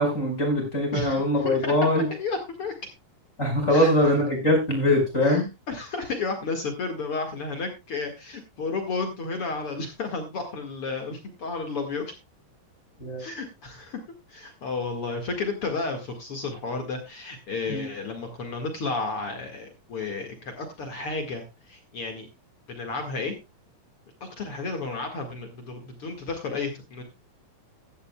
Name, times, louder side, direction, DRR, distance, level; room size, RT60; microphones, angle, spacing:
voice 1, 0.0-2.1 3.4-5.4 13.0-13.2 17.7-17.9, left 1 dB, 20° left, 2 dB, 5.1 m, -22 dB
voice 2, 0.9-2.7 3.7-3.9 5.2-12.1 13.2-14.0 14.3-22.3 22.7-23.3 24.2-27.0, left 3 dB, 45° left, 5 dB, 2.4 m, -32 dB
15.5 x 12.5 x 2.3 m, 0.24 s
omnidirectional pair, 4.0 m